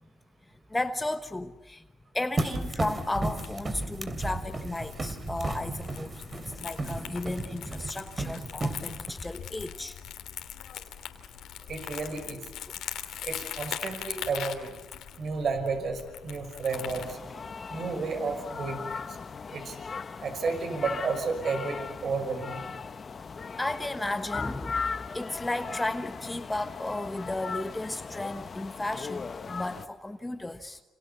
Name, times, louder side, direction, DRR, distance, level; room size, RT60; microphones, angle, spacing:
voice 1, 0.7-1.8 2.1-10.0 12.7-12.8 23.6-30.8, left 2 dB, 15° left, 8 dB, 1.1 m, -34 dB
sound 1, 2.4-9.1, right 2 dB, 30° right, 2.9 m, -34 dB
Crumpling crinkling, 2.5-17.2, left 10 dB, 80° left, 3.0 m, -41 dB
voice 2, 11.7-12.5 13.2-14.8 15.2-17.2 17.7-19.2 19.5-19.8 20.2-22.6, right 4 dB, 55° right, 8 dB, 5.8 m, -32 dB
sound 2, 16.7-29.9, left 5 dB, 40° left, 1.3 m, -38 dB
28.5 x 28.0 x 7.0 m, 1.1 s
cardioid pair, 90°, 0 cm